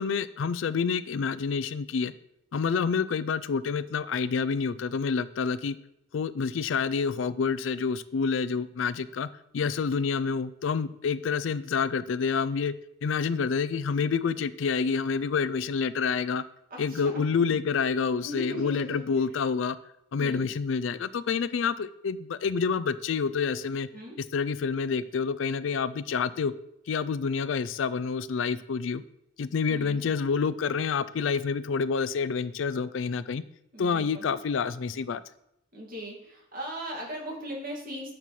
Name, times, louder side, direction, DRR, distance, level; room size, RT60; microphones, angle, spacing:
voice 1, 0.0-2.1 2.5-5.8 6.1-9.3 9.5-12.7 13.0-16.4 16.8-19.8 20.1-23.9 24.3-26.5 26.9-29.0 29.4-33.4 33.8-35.2, left 5 dB, 75° left, 15 dB, 0.4 m, -28 dB
voice 2, 16.7-17.6 18.2-19.0 20.2-20.5 23.9-24.2 29.7-30.0 33.7-34.3 35.7-38.1, equal, 45° right, -1 dB, 2.1 m, -39 dB
9.1 x 5.9 x 3.2 m, 0.79 s
head